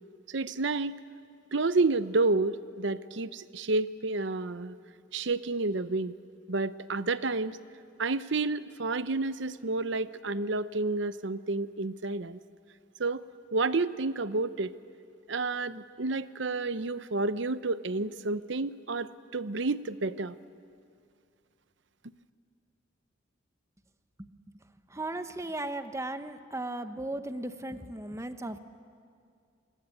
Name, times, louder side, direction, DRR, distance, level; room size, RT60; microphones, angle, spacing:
voice 1, 0.3-0.9 1.5-4.7 5.1-6.2 6.5-7.6 8.0-12.4 13.0-13.3 13.5-14.7 15.3-20.4, right 3 dB, 65° right, 14 dB, 0.8 m, -30 dB
voice 2, 24.9-28.6, right 2 dB, 15° right, 9 dB, 1.0 m, -36 dB
27.5 x 22.0 x 9.8 m, 2.3 s
head